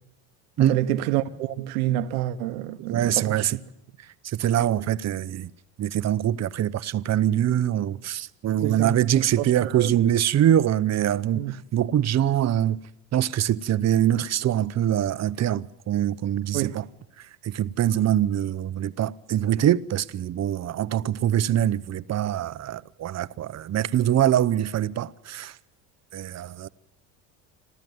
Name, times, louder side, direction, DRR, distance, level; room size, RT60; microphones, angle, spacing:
voice 1, 0.6-3.6 8.6-10.0 11.3-11.6 16.5-16.8, right 14 dB, 80° right, 1.2 m, -28 dB
voice 2, 2.9-3.6 4.3-5.5 5.8-11.4 11.7-12.8 13.1-16.8 17.4-25.5 26.1-26.7, right 11 dB, 40° right, 0.8 m, -24 dB
27.0 x 14.0 x 9.4 m
supercardioid pair, 90°, 43 cm